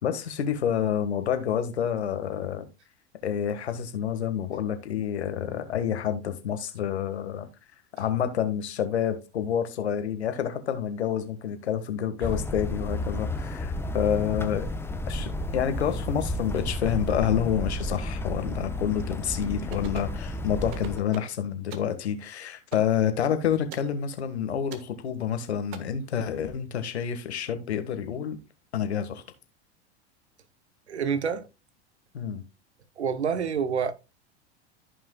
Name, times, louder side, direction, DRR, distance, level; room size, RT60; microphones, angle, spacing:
voice 1, 0.0-2.6 3.2-7.5 8.0-14.7 15.1-28.4 28.7-29.2 32.1-32.4, left 9 dB, 80° left, 1.6 m, -28 dB
sound 1, 12.2-21.0, left 1 dB, 5° left, 0.9 m, -32 dB
sound 2, 19.7-20.2 20.7-21.3 21.7-21.9 22.7-22.9 23.7-23.9 24.7-24.9 25.7-25.8, right 8 dB, 55° right, 1.4 m, -41 dB
voice 2, 30.9-31.5 33.0-33.9, right 6 dB, 90° right, 0.9 m, -27 dB
14.5 x 5.6 x 2.3 m
hypercardioid pair, 90°, 33 cm